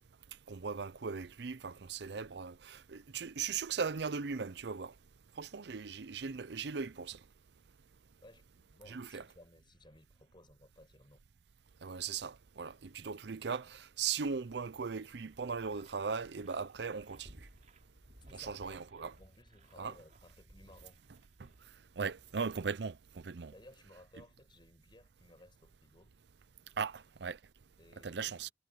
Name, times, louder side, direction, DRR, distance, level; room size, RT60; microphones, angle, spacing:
voice 1, 0.5-4.9 5.4-7.2 8.9-9.2 11.8-17.3 18.3-19.1 19.8-19.9 22.0-23.5 26.8-27.4 28.0-28.5, right 5 dB, 65° right, 0.6 m, -38 dB
voice 2, 8.2-11.2 18.2-18.9 19.2-21.0 23.5-26.2 27.8-28.5, left 1 dB, 25° left, 6.5 m, -59 dB
sound 1, 15.3-22.7, right 1 dB, 45° right, 3.1 m, -60 dB
head